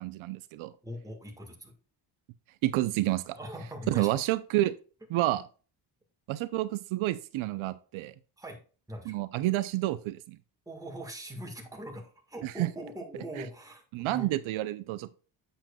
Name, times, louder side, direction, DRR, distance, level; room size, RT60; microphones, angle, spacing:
voice 1, 0.0-0.7 2.6-3.4 3.9-4.8 5.1-5.4 6.3-8.1 9.1-10.4 12.4-12.7 13.4-13.5 13.9-15.2, right 16 dB, 80° right, 13 dB, 0.6 m, -29 dB
voice 2, 0.8-1.7 3.3-4.1 8.4-8.6 8.9-9.1 10.6-14.3, right 1 dB, 5° right, 2 dB, 1.5 m, -41 dB
7.4 x 6.9 x 2.3 m, 0.37 s
cardioid pair, 135°, 47 cm